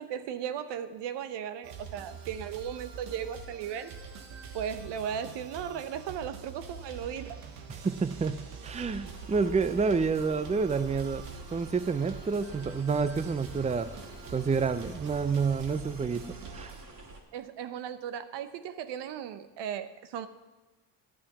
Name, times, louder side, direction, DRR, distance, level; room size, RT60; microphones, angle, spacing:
voice 1, 0.0-3.9 4.5-7.4 17.3-20.3, right 9 dB, 65° right, 11 dB, 0.9 m, -36 dB
sound 1, 1.6-16.8, right 5 dB, 85° right, 1.4 m, -45 dB
voice 2, 7.8-11.2 11.5-13.9 14.3-16.2 16.5-16.7, right 5 dB, 15° right, 12 dB, 0.6 m, -28 dB
sound 2, 8.7-17.2, right 2 dB, 40° right, 2.7 m, -48 dB
11.5 x 8.5 x 6.0 m, 1.2 s
hypercardioid pair, 65°, 45 cm